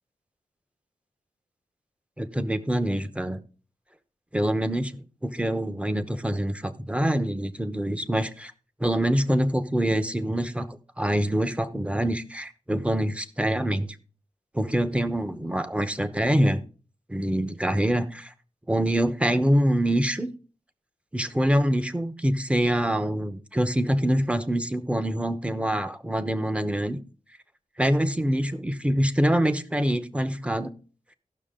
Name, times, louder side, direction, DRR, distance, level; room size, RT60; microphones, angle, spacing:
voice 1, 2.2-3.4 4.3-4.9 5.2-8.5 8.8-13.9 14.5-16.6 17.1-18.3 18.7-20.3 21.1-27.0 27.8-30.7, right 1 dB, 10° right, 0.9 m, -25 dB
16.0 x 6.2 x 3.8 m
wide cardioid pair, 80°, 13 cm